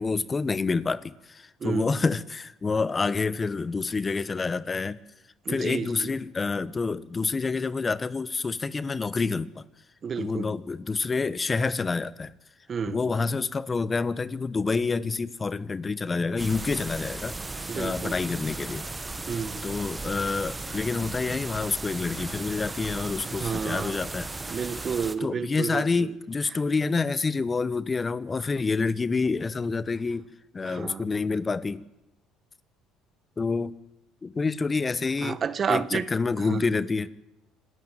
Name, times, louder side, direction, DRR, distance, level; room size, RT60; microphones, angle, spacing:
voice 1, 0.0-5.0 5.5-9.6 10.2-12.3 12.8-17.4 17.7-18.9 19.6-24.3 25.2-30.3 30.5-31.8 33.4-33.7 34.2-35.4 35.7-37.1, left 4 dB, 30° left, 1.1 m, -28 dB
voice 2, 1.6-1.9 5.4-6.1 10.0-10.5 12.7-13.0 17.7-18.1 19.3-19.6 23.2-24.0 24.5-26.1 30.6-31.1 35.2-36.1 36.4-36.7, right 6 dB, 40° right, 1.3 m, -31 dB
sound 1, 16.4-25.2, right 3 dB, 20° right, 1.7 m, -36 dB
26.0 x 13.0 x 9.2 m
hypercardioid pair, 70°, 0 cm